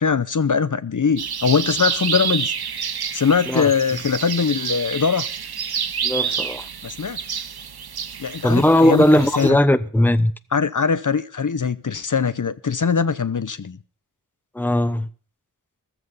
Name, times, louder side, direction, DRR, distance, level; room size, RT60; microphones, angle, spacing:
voice 1, 0.0-2.5 3.1-5.3 6.8-7.4 8.2-9.0 9.4-9.6 10.5-13.8, left 6 dB, 55° left, 0.8 m, -21 dB
sound 1, 1.2-9.5, right 7 dB, 85° right, 0.8 m, -28 dB
voice 2, 6.0-6.7 8.4-10.3 14.5-15.1, left 1 dB, 5° left, 1.0 m, -18 dB
14.5 x 14.0 x 5.5 m
wide cardioid pair, 50°, 36 cm